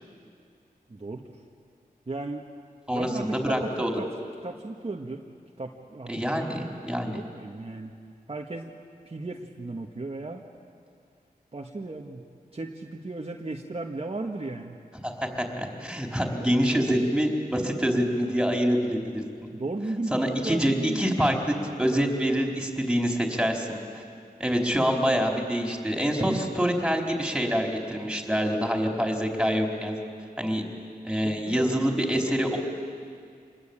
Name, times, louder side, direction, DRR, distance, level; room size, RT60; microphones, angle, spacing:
voice 1, 0.9-1.4 2.1-2.4 2.9-4.1 4.4-5.2 5.6-6.7 7.0-7.9 8.3-8.7 9.0-10.4 11.5-12.2 12.5-14.8 16.4-16.5 19.5-21.0 26.2-26.5 31.2-31.8, right 2 dB, 40° right, 0 dB, 1.6 m, -35 dB
voice 2, 2.9-3.9 6.1-7.2 15.0-19.2 20.1-23.8 24.4-30.0 30.4-30.6 31.0-32.6, equal, 5° right, 1 dB, 4.5 m, -26 dB
26.5 x 21.0 x 8.9 m, 2.2 s
cardioid pair, 55°, 16 cm